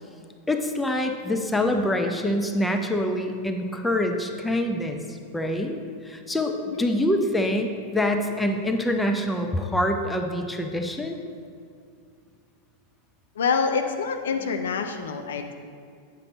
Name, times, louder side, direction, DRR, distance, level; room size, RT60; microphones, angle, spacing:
voice 1, 0.5-5.8 6.0-11.2, left 1 dB, 5° left, 4 dB, 0.6 m, -25 dB
voice 2, 13.4-15.5, left 5 dB, 65° left, 6 dB, 0.6 m, -26 dB
8.3 x 6.8 x 4.0 m, 2.3 s
figure-of-eight pair, 90°, 0 cm